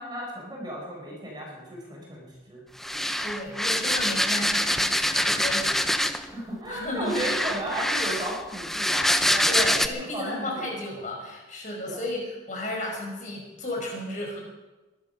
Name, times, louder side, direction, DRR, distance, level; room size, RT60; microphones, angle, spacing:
voice 1, 0.0-2.6 6.2-10.7 11.8-12.0, right 1 dB, 20° right, -2 dB, 4.5 m, -34 dB
sound 1, 2.8-6.3 7.1-9.9, equal, ahead, 0.6 m, -25 dB
voice 2, 3.2-5.8 6.7-7.1 9.5-14.4, left 1 dB, 40° left, 0 dB, 5.0 m, -33 dB
22.5 x 12.0 x 5.5 m, 1.1 s
head